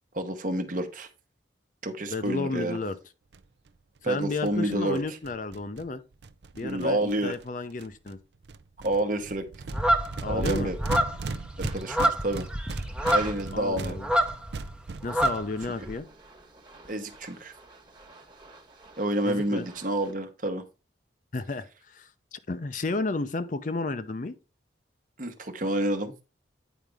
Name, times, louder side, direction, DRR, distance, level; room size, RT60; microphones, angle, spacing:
voice 1, 0.1-1.1 1.8-2.8 4.0-5.2 6.6-7.3 8.8-9.5 10.3-10.8 11.6-12.5 13.1-14.0 16.9-17.5 19.0-20.6 25.2-26.1, right 1 dB, 45° right, 1.0 m, -29 dB
voice 2, 2.1-3.0 4.0-6.0 6.5-8.2 10.2-10.7 13.5-14.1 15.0-16.1 19.2-19.7 21.3-24.3, left 3 dB, 45° left, 0.6 m, -32 dB
sound 1, 3.3-3.4 3.7-3.8 4.0-4.1 4.2-7.4 7.8-8.1 8.4-15.7, right 4 dB, 65° right, 0.5 m, -38 dB
sound 2, 9.7-14.7 14.9-15.9, right 1 dB, 5° right, 0.6 m, -27 dB
sound 3, 11.6-11.9 12.9-13.6 15.4-20.1, right 3 dB, 25° right, 1.3 m, -47 dB
9.1 x 5.1 x 3.4 m
head